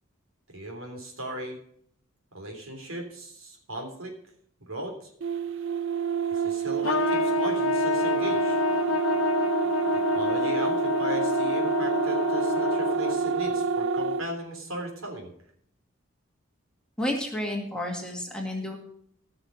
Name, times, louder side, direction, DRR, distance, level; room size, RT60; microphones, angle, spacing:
voice 1, 0.5-1.6 2.3-4.1 4.6-5.1 6.3-8.6 9.9-15.3, right 1 dB, 80° right, 2 dB, 3.4 m, -37 dB
sound 1, 5.2-14.3, right 6 dB, 60° right, 0.5 m, -27 dB
Trumpet, 6.8-13.4, left 6 dB, 70° left, 0.8 m, -28 dB
voice 2, 17.0-18.8, left 1 dB, 5° left, 0 dB, 2.0 m, -31 dB
17.0 x 6.5 x 5.2 m, 0.67 s
head